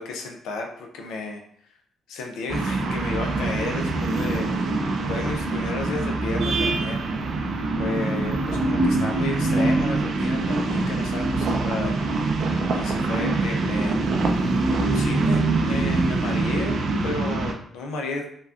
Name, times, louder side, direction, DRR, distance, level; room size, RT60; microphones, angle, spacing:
voice 1, 0.0-1.4 2.1-4.8 5.1-7.3 7.8-12.3 12.7-14.0 14.9-16.7 17.0-18.3, left 3 dB, 90° left, 2 dB, 0.4 m, -33 dB
sound 1, 2.5-17.5, right 3 dB, 65° right, 0.4 m, -24 dB
3.5 x 2.2 x 2.4 m, 0.64 s
cardioid pair, 90°, 0 cm